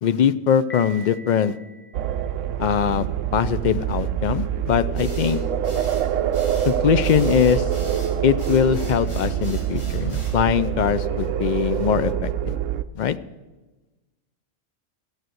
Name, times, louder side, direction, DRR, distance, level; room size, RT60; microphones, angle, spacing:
voice 1, 0.0-1.6 2.6-3.1 3.3-5.4 6.6-7.7 8.2-12.5 12.9-13.2, left 8 dB, 65° left, 13 dB, 0.4 m, -21 dB
Piano, 0.7-2.6, equal, 10° left, 1.0 m, -43 dB
sound 1, 1.9-12.8, right 10 dB, 80° right, 0.9 m, -25 dB
sound 2, 5.0-10.4, equal, 40° left, 4.9 m, -41 dB
14.0 x 8.2 x 7.8 m, 1.1 s
omnidirectional pair, 1.3 m